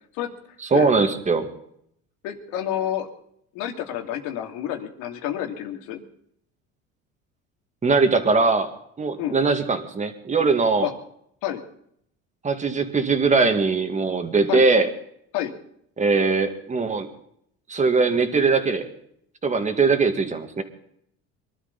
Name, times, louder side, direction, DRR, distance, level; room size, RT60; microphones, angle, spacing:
voice 1, 0.7-1.5 7.8-8.7 9.0-10.9 12.4-14.9 16.0-17.1 17.7-18.9 19.4-20.6, right 4 dB, 25° right, 7 dB, 2.3 m, -21 dB
voice 2, 2.2-3.1 3.5-6.0 9.2-9.4 10.8-10.9 11.4-11.6 14.5-14.6 15.3-15.5, left 11 dB, 75° left, 4 dB, 2.9 m, -29 dB
24.0 x 12.5 x 4.2 m, 0.70 s
supercardioid pair, 105°, 30 cm